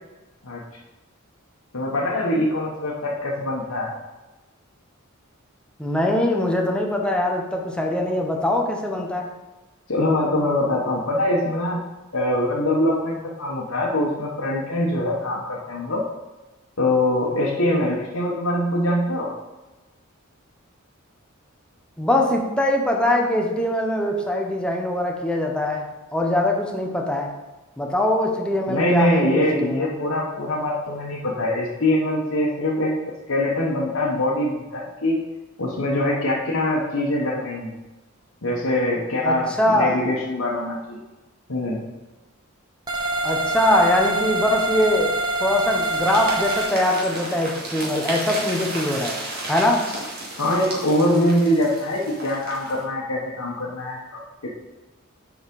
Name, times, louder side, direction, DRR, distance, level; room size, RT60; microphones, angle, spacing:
voice 1, 1.7-3.9 9.9-11.8 12.1-16.0 16.8-19.3 28.7-33.0 33.3-35.2 35.6-37.8 38.4-41.0 41.5-41.8 50.4-54.5, left 1 dB, 80° left, -4 dB, 1.2 m, -23 dB
voice 2, 5.8-9.3 22.0-27.3 27.8-29.9 39.2-40.0 43.2-45.1 45.4-49.2 49.5-49.9, left 1 dB, 5° left, 0 dB, 1.0 m, -22 dB
sound 1, 42.9-46.7, right 2 dB, 20° right, 1.0 m, -25 dB
sound 2, 45.6-52.8, right 2 dB, 50° right, 2.0 m, -33 dB
7.1 x 5.0 x 5.3 m, 1.1 s
head